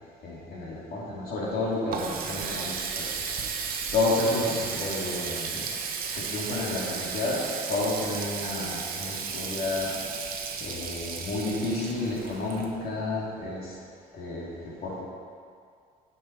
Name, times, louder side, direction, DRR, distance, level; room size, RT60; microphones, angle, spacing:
voice 1, 0.2-3.6 3.9-5.8 6.1-13.8 14.1-15.0, left 2 dB, 65° left, -5 dB, 2.3 m, -31 dB
Water tap faucet, 1.5-13.1, right 6 dB, 60° right, 1.0 m, -34 dB
8.5 x 6.6 x 4.4 m, 2.2 s
cardioid pair, 110°, 17 cm